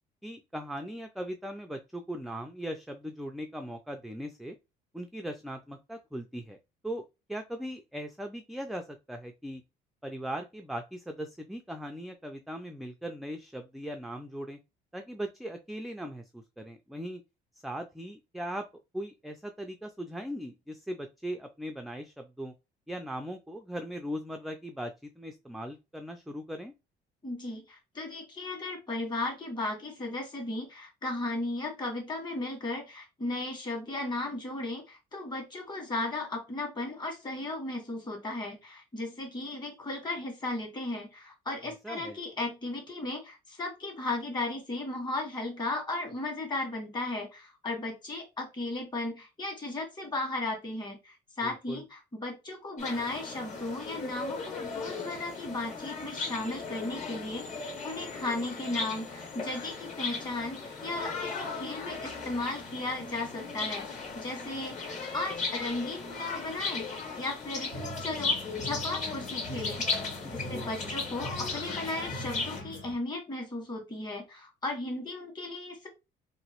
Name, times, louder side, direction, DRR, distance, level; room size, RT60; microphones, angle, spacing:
voice 1, 0.2-4.6 4.9-6.6 6.8-9.6 10.0-14.6 14.9-17.2 17.6-18.7 18.9-22.5 22.9-26.7 41.8-42.2 51.4-51.8 70.2-70.9, equal, ahead, 5 dB, 0.3 m, -39 dB
voice 2, 27.2-57.5 57.8-66.9 67.1-67.7 68.0-69.8 70.3-75.9, left 2 dB, 25° left, 1 dB, 1.5 m, -35 dB
sound 1, 52.8-72.6, left 4 dB, 45° left, 1.7 m, -36 dB
sound 2, 67.7-72.9, right 1 dB, 85° left, 2.1 m, -42 dB
2.9 x 2.6 x 2.9 m, 0.25 s
cardioid pair, 110°, 17 cm